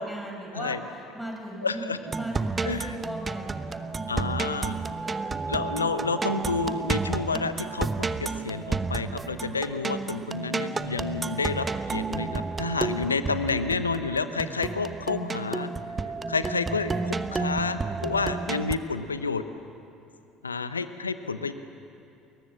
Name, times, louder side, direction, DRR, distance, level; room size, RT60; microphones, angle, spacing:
voice 1, 0.0-1.9 2.1-3.9 5.0-5.6, right 1 dB, 5° left, 0 dB, 7.1 m, -38 dB
voice 2, 1.6-2.0 2.6-3.0 4.1-4.8 5.5-15.7 16.3-19.4 20.4-21.5, left 4 dB, 80° left, 11 dB, 1.0 m, -30 dB
sound 1, 2.1-18.7, right 4 dB, 25° right, 1.0 m, -31 dB
30.0 x 21.5 x 7.5 m, 2.7 s
figure-of-eight pair, 60°, 0 cm